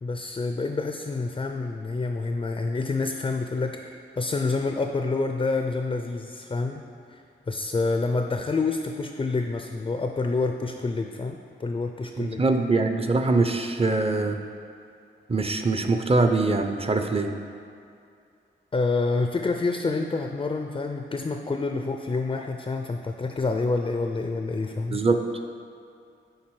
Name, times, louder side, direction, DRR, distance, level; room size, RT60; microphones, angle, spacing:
voice 1, 0.0-6.8 7.1-7.2 7.5-12.4 18.7-25.0, left 3 dB, 25° left, 4 dB, 0.4 m, -28 dB
voice 2, 12.2-14.4 15.3-17.3 24.9-25.2, right 3 dB, 30° right, 6 dB, 0.5 m, -23 dB
7.3 x 4.6 x 4.7 m, 2.5 s
wide cardioid pair, 80°, 20 cm